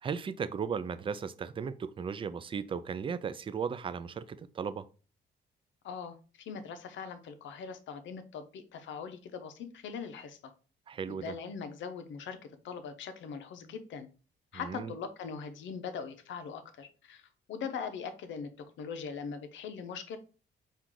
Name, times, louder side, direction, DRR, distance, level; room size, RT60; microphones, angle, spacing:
voice 1, 0.0-4.9 10.9-11.3 14.5-14.9, right 6 dB, 25° right, 0.3 m, -36 dB
voice 2, 5.8-10.5 11.1-12.4 12.6-14.1 14.5-20.2, left 6 dB, 75° left, 0.7 m, -41 dB
4.5 x 2.4 x 3.7 m
cardioid pair, 90°, 20 cm